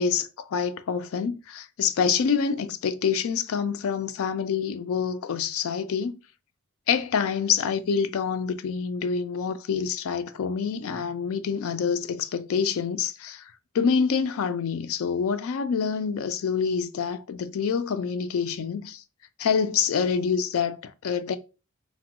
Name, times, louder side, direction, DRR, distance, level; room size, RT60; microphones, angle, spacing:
voice 1, 0.0-6.2 6.9-19.0 19.4-21.4, left 6 dB, 70° left, 0.3 m, -26 dB
2.9 x 2.1 x 2.9 m
head